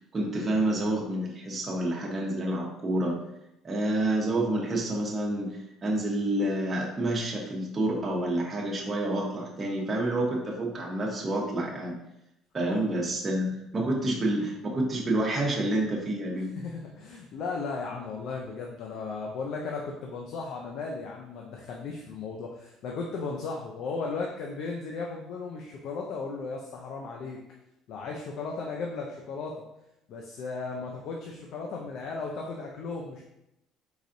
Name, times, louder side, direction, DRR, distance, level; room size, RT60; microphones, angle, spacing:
voice 1, 0.1-3.2 3.6-12.0 12.5-16.6, right 1 dB, 25° right, -3 dB, 1.1 m, -28 dB
voice 2, 16.5-27.4 27.9-29.6 30.1-33.2, left 4 dB, 60° left, 0 dB, 0.6 m, -36 dB
4.8 x 4.0 x 2.6 m, 0.86 s
cardioid pair, 120°, 0 cm